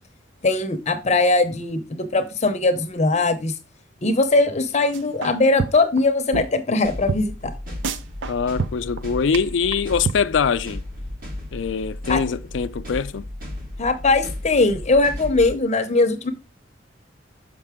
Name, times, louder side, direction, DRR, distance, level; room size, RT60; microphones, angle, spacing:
voice 1, 0.4-3.5 4.0-7.5 12.1-12.2 13.8-16.3, left 3 dB, 40° left, 0.7 m, -20 dB
sound 1, 4.9-5.3 5.6-6.0 6.3-6.4 6.7-6.8 7.1-7.2 7.5-7.6 7.8-8.3 8.6-9.0 9.3-9.4 9.7-9.8 10.1-10.2, right 5 dB, 90° right, 0.5 m, -26 dB
sound 2, 6.8-15.6, left 1 dB, 50° right, 1.8 m, -34 dB
voice 2, 8.3-10.8 11.5-13.3, left 6 dB, 85° left, 0.4 m, -23 dB
6.6 x 5.3 x 3.5 m
head